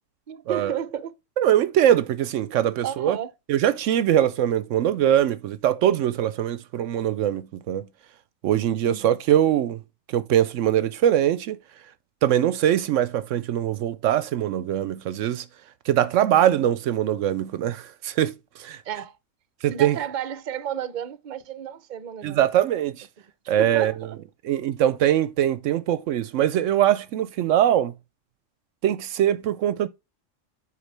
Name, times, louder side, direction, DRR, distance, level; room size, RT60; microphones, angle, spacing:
voice 1, 0.3-1.1 2.8-3.3 8.8-9.2 18.8-19.2 19.7-22.5 23.6-24.2, right 9 dB, 45° right, 0.7 m, -32 dB
voice 2, 1.4-3.2 3.5-7.9 8.4-9.8 10.1-11.6 12.2-15.4 15.9-18.8 19.6-20.0 22.2-23.1 23.5-23.9 24.4-27.9 28.8-29.9, right 11 dB, 75° right, 0.9 m, -22 dB
8.1 x 4.8 x 3.3 m
omnidirectional pair, 1.3 m